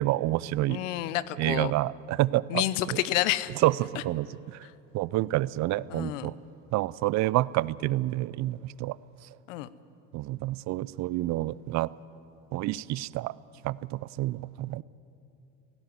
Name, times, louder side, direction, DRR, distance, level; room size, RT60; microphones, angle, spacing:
voice 1, 0.0-0.8 1.4-2.6 2.9-3.0 3.6-4.6 4.9-6.4 6.7-9.0 10.1-11.9 12.5-13.3 13.6-14.8, right 17 dB, 50° right, 21 dB, 0.5 m, -28 dB
voice 2, 0.7-1.7 2.5-3.5 5.9-6.3 9.5-9.7, left 15 dB, 85° left, 17 dB, 0.9 m, -29 dB
17.5 x 17.0 x 9.5 m, 2.6 s
supercardioid pair, 105°, 37 cm